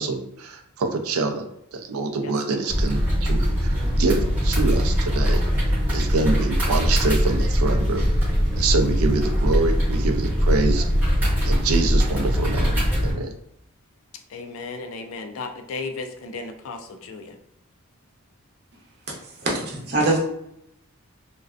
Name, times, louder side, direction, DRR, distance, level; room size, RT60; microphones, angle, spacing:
voice 1, 0.0-1.5 1.7-5.4 5.9-8.1 8.5-10.8 11.4-12.7 13.0-13.3, right 3 dB, 80° right, 5 dB, 0.4 m, -25 dB
voice 2, 2.2-2.6 14.3-17.3, left 3 dB, 70° left, 5 dB, 0.3 m, -35 dB
sound 1, 2.7-13.1, equal, 10° right, 0.8 m, -21 dB
voice 3, 19.4-20.2, right 2 dB, 50° right, -3 dB, 0.7 m, -22 dB
2.5 x 2.1 x 2.3 m, 0.77 s
head